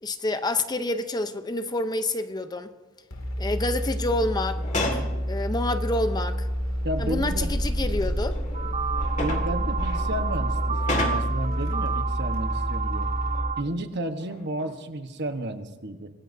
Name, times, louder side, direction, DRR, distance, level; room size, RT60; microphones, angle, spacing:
voice 1, 0.0-2.7 3.4-4.6 4.9-6.5 7.0-8.4, left 2 dB, 20° left, 0.7 m, -28 dB
sound 1, 3.1-13.4, equal, 85° left, 2.5 m, -28 dB
sound 2, 4.5-5.2 6.4-6.5 7.7-11.5 13.3-13.8 14.2-14.9 15.5-15.6, left 2 dB, 35° left, 2.0 m, -33 dB
voice 2, 6.8-7.5 9.2-13.1 13.6-16.1, right 1 dB, 55° right, 1.2 m, -32 dB
sound 3, 8.5-13.6, right 7 dB, 35° right, 0.6 m, -31 dB
25.5 x 19.0 x 2.7 m
head